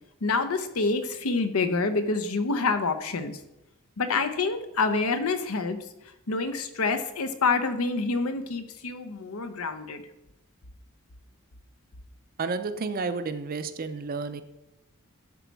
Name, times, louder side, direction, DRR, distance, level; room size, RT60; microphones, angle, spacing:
voice 1, 0.2-3.4 4.0-5.8 6.3-10.0, left 4 dB, 75° left, 10 dB, 0.8 m, -27 dB
voice 2, 12.4-14.4, right 4 dB, 40° right, 11 dB, 0.5 m, -31 dB
10.5 x 4.1 x 4.6 m, 0.89 s
head